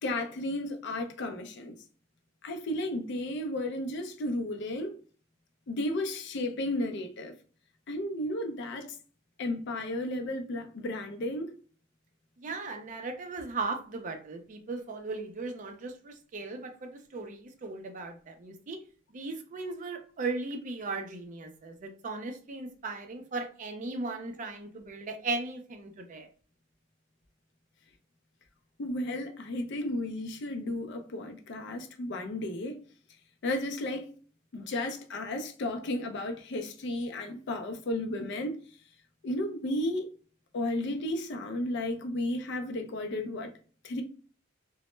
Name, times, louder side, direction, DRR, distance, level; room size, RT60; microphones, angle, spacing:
voice 1, 0.0-1.8 2.4-5.0 5.7-7.3 7.9-9.0 9.4-11.5 28.8-32.8 33.4-34.1 34.5-38.6 39.2-40.1 40.5-43.5 43.8-44.0, left 1 dB, 55° left, 0.4 m, -33 dB
voice 2, 12.4-18.8 19.1-26.3, right 3 dB, 40° right, 0.4 m, -37 dB
2.0 x 2.0 x 3.0 m
head